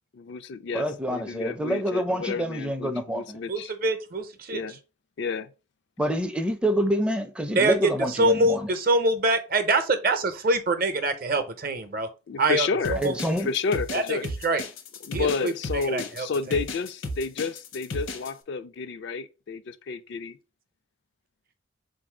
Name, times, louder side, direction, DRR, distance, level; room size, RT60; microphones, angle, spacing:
voice 1, 0.1-3.7 4.5-4.8 5.2-5.5 12.3-13.0 13.4-14.3 15.0-20.4, left 5 dB, 60° left, 0.3 m, -31 dB
voice 2, 0.7-3.4 6.0-8.7 13.0-13.5, equal, 5° right, 0.4 m, -27 dB
voice 3, 3.5-4.6 7.6-12.1 12.4-13.1 13.9-14.2 14.4-14.6 15.1-16.6, right 2 dB, 45° right, 0.6 m, -25 dB
sound 1, 12.8-18.3, left 1 dB, 75° left, 0.8 m, -34 dB
3.8 x 2.6 x 4.7 m
head